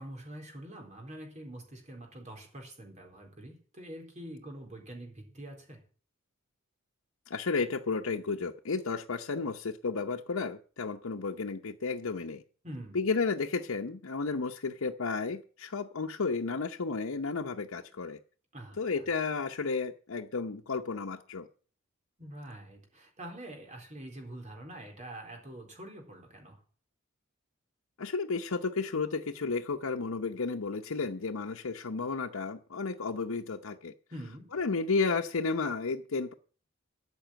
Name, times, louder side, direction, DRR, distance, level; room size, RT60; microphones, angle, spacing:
voice 1, 0.0-5.8 12.6-13.1 18.5-19.0 22.2-26.6 34.1-34.5, right 1 dB, 35° right, 4.0 m, -45 dB
voice 2, 7.3-12.4 12.9-18.2 18.8-21.5 28.0-33.9 34.5-36.3, left 4 dB, 90° left, 0.8 m, -32 dB
13.5 x 6.1 x 9.0 m
head